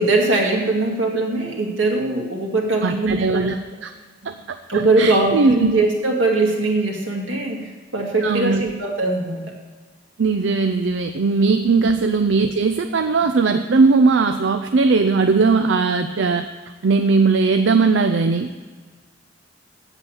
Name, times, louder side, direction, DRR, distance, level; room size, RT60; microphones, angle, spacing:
voice 1, 0.0-3.5 4.2-4.4 4.7-9.5 11.8-11.9, right 2 dB, 90° right, 0 dB, 2.3 m, -21 dB
voice 2, 2.8-3.5 3.8-3.9 4.2-4.6 5.0-5.7 8.2-8.6 10.2-16.5 16.8-18.5, right 4 dB, 70° right, 7 dB, 0.5 m, -18 dB
8.1 x 8.0 x 7.0 m, 1.5 s
head